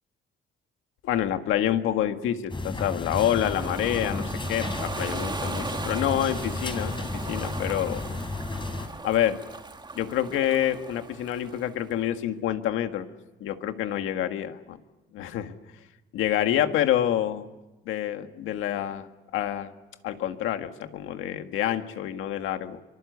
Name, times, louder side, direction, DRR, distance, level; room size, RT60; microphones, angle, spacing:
voice 1, 1.0-8.0 9.0-9.4 10.0-13.1 13.4-14.8 15.1-15.6 16.1-17.5 17.9-19.1 19.3-19.7 20.0-22.8, left 11 dB, 90° left, 7 dB, 1.9 m, -27 dB
sound 1, 2.5-8.9, left 2 dB, 25° left, 4.4 m, -33 dB
Ocean, 3.1-11.9, right 3 dB, 20° right, 2.1 m, -38 dB
24.5 x 24.5 x 8.2 m, 1.1 s
cardioid pair, 90°, 20 cm